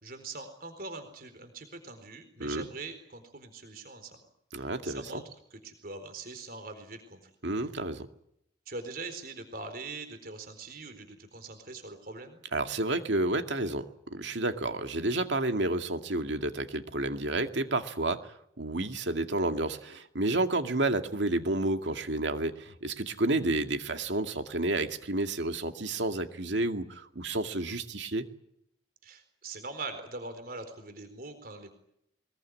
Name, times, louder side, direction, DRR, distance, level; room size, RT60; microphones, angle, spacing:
voice 1, 0.0-4.2 4.6-5.2 5.5-7.3 8.7-12.4 29.0-31.7, right 3 dB, 50° right, 8 dB, 4.1 m, -42 dB
voice 2, 4.5-5.2 7.4-8.1 12.5-13.9 14.1-28.3, right 2 dB, 75° right, 6 dB, 2.2 m, -30 dB
23.5 x 21.5 x 9.8 m, 0.76 s
head